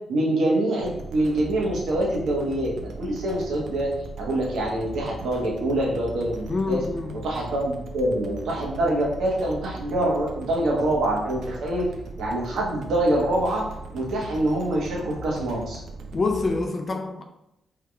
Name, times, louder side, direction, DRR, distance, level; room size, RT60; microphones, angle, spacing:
voice 1, 0.1-3.9 4.2-6.8 7.2-11.9 12.2-13.7 13.9-15.8, right 1 dB, 85° right, 1.1 m, -25 dB
sound 1, 0.8-16.6, right 2 dB, 70° right, 0.5 m, -39 dB
voice 2, 6.5-7.2 16.1-17.2, left 3 dB, 35° left, 0.4 m, -26 dB
4.7 x 3.4 x 2.3 m
cardioid pair, 130°, 0 cm